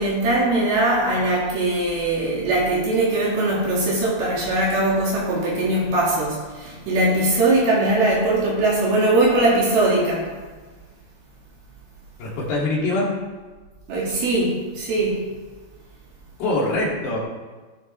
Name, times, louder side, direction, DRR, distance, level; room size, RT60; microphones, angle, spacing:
voice 1, 0.0-10.3 13.9-15.2, right 2 dB, 60° right, -5 dB, 4.2 m, -21 dB
voice 2, 12.2-13.1 16.4-17.2, left 2 dB, 65° left, -4 dB, 4.7 m, -23 dB
15.5 x 12.0 x 3.5 m, 1.3 s
omnidirectional pair, 5.0 m